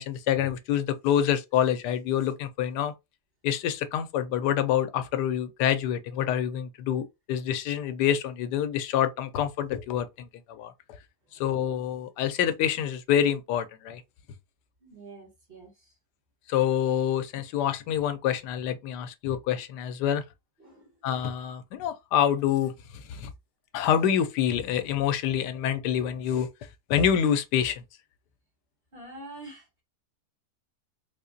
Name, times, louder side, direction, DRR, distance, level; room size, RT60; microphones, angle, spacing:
voice 1, 0.0-2.9 3.4-10.7 11.4-14.0 16.5-20.2 21.0-23.3 23.7-26.5 26.9-27.8, left 9 dB, 90° left, 1.2 m, -27 dB
voice 2, 14.8-15.7 20.6-20.9 28.9-29.8, right 2 dB, 35° right, 1.9 m, -46 dB
3.8 x 2.8 x 2.6 m
omnidirectional pair, 1.7 m